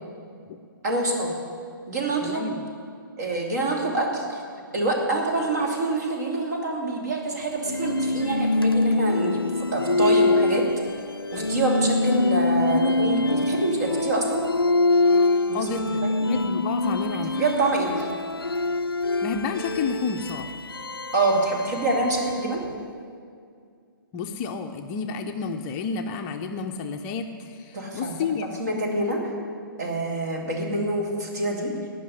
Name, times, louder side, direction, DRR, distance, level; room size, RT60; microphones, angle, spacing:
voice 1, 0.8-1.3 1.9-2.5 3.2-4.4 4.7-9.4 9.7-10.6 11.3-14.4 15.5-15.7 16.0-16.1 17.4-18.1 21.1-22.6 27.7-28.1 28.6-29.3 29.8-31.7, right 2 dB, 50° right, 0 dB, 2.9 m, -26 dB
voice 2, 2.2-2.6 15.5-17.3 19.2-20.5 24.1-28.5, left 5 dB, 20° left, 4 dB, 0.6 m, -30 dB
sound 1, 7.6-22.7, left 2 dB, 90° left, 0.4 m, -24 dB
17.5 x 6.0 x 9.7 m, 2.3 s
figure-of-eight pair, 125°, 12 cm